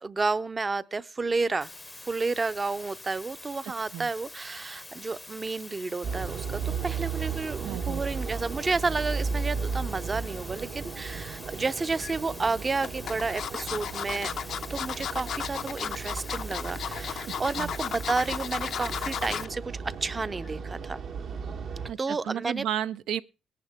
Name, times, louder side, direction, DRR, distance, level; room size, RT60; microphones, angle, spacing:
voice 1, 0.0-1.7 2.0-14.3 14.7-21.0 22.0-22.7, right 3 dB, 30° right, 0.6 m, -31 dB
sound 1, 1.6-19.5, left 2 dB, 15° left, 0.6 m, -46 dB
voice 2, 3.6-4.1 7.6-8.0 17.2-17.7 21.9-23.2, right 10 dB, 85° right, 0.6 m, -34 dB
sound 2, 6.0-21.9, right 5 dB, 65° right, 1.1 m, -35 dB
sound 3, 11.6-12.1 12.8-19.5 19.9-20.2 20.5-20.6, left 8 dB, 65° left, 0.6 m, -34 dB
18.5 x 10.5 x 3.5 m
cardioid pair, 90°, 0 cm